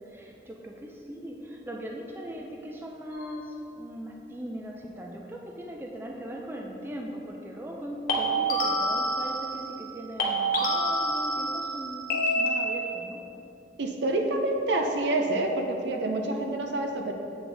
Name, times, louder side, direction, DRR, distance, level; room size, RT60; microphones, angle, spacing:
voice 1, 0.1-13.2, equal, 10° right, 0 dB, 0.4 m, -39 dB
sound 1, 3.1-3.4 8.1-9.9 10.2-13.1, right 1 dB, 50° left, 0.8 m, -28 dB
voice 2, 13.8-17.1, right 2 dB, 75° right, 3 dB, 0.6 m, -27 dB
7.6 x 4.3 x 3.3 m, 2.8 s
head